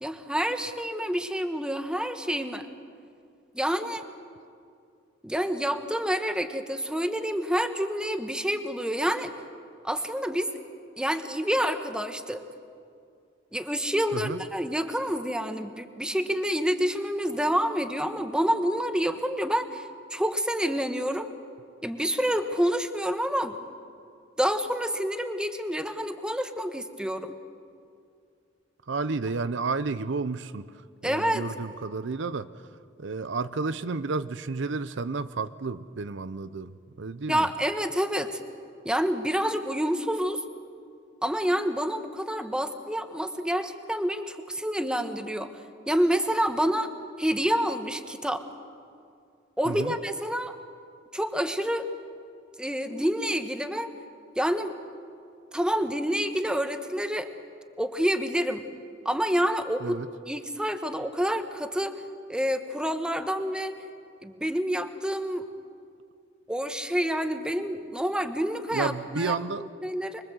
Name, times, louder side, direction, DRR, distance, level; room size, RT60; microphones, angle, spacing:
voice 1, 0.0-2.7 3.5-4.0 5.2-9.3 9.8-10.5 11.0-12.4 13.5-21.3 21.8-23.6 24.4-27.4 31.0-31.4 37.3-38.4 38.8-40.4 41.2-46.9 47.2-48.4 49.6-50.5 51.1-51.9 52.6-53.9 54.4-54.7 55.5-57.3 57.8-58.6 59.0-60.0 60.3-62.0 62.3-63.7 64.2-65.5 66.5-70.2, equal, 5° right, 8 dB, 1.2 m, -28 dB
voice 2, 14.1-14.4 28.9-30.7 31.0-32.5 33.0-37.5 49.7-49.9 59.8-60.1 68.7-69.6, right 4 dB, 65° right, 13 dB, 0.6 m, -31 dB
25.0 x 22.5 x 7.9 m, 2.4 s
head